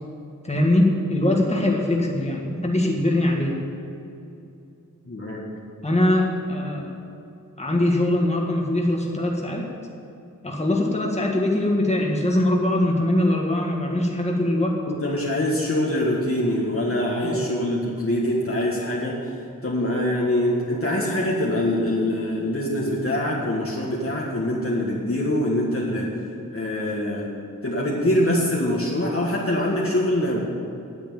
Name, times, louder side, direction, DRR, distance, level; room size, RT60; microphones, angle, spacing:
voice 1, 0.4-3.6 5.8-6.9 7.6-9.6 10.4-14.8 17.2-17.4, left 1 dB, 20° left, -1 dB, 1.7 m, -22 dB
voice 2, 5.1-5.5 14.9-19.3 19.6-26.1 26.5-27.3 27.6-30.4, left 1 dB, 40° left, -4 dB, 1.8 m, -24 dB
9.5 x 8.3 x 8.7 m, 2.7 s
wide cardioid pair, 65°, 33 cm